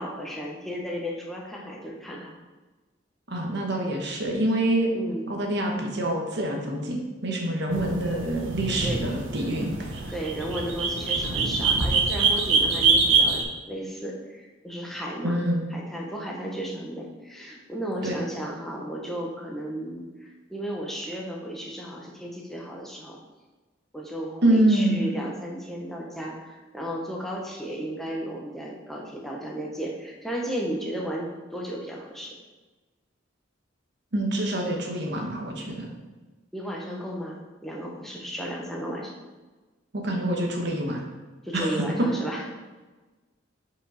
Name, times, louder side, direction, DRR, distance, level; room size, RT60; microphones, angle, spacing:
voice 1, 0.0-2.3 4.9-5.3 8.8-9.1 10.1-15.4 15.7-23.2 23.9-32.4 36.5-39.1 41.4-42.5, equal, ahead, -2 dB, 1.1 m, -34 dB
voice 2, 3.3-4.9 5.3-10.1 15.2-15.7 18.0-18.2 24.4-25.0 34.1-35.9 39.9-41.0 41.5-41.7, right 1 dB, 60° right, 1 dB, 1.3 m, -26 dB
sound 1, 7.7-13.4, right 4 dB, 90° right, 1.0 m, -24 dB
5.5 x 5.2 x 4.9 m, 1.2 s
head